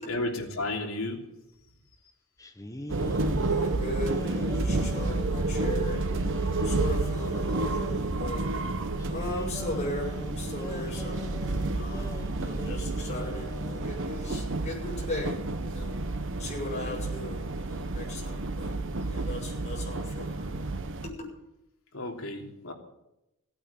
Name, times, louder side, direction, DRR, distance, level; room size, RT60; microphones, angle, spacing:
voice 1, 0.0-1.3 21.9-22.7, left 2 dB, 70° left, 1 dB, 3.2 m, -33 dB
sound 1, 2.4-8.2 9.0-14.0, left 1 dB, 15° left, 1.1 m, -41 dB
sound 2, 2.9-21.1, right 2 dB, 60° right, 1.1 m, -30 dB
voice 2, 3.5-6.0 6.3-8.4 9.1-11.3 11.7-12.1 12.4-16.0 16.4-18.7 19.1-20.8 21.2-21.3, left 2 dB, 30° left, -3 dB, 6.7 m, -38 dB
16.5 x 9.1 x 8.6 m, 0.89 s
head